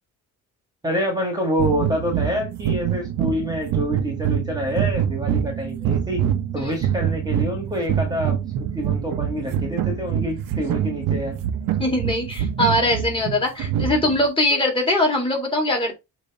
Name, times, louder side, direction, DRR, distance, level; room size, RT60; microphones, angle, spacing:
voice 1, 0.8-6.2 6.5-11.4, equal, 10° right, 1.6 m, -27 dB
sound 1, 1.6-14.3, right 9 dB, 80° right, 1.1 m, -25 dB
voice 2, 11.8-15.9, left 1 dB, 15° left, 2.1 m, -21 dB
7.4 x 3.1 x 4.1 m
cardioid pair, 160°, 33 cm